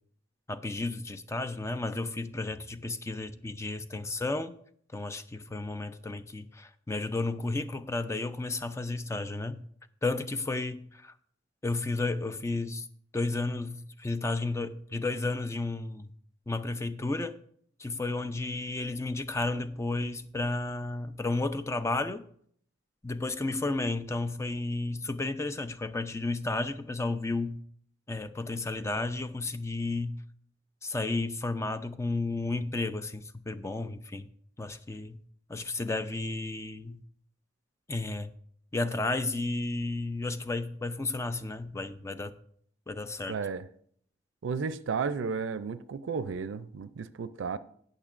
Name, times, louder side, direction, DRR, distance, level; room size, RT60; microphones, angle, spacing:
voice 1, 0.5-4.5 4.9-9.6 10.0-11.1 11.6-12.9 13.1-16.1 16.5-17.4 17.8-22.3 23.0-27.6 28.1-30.2 30.8-34.3 34.6-35.2 35.5-37.0 37.9-38.3 38.7-42.3 42.9-43.4, left 2 dB, 15° left, 0.4 m, -32 dB
voice 2, 43.3-43.6 44.4-47.6, right 5 dB, 85° right, 0.4 m, -33 dB
18.5 x 6.5 x 2.5 m
head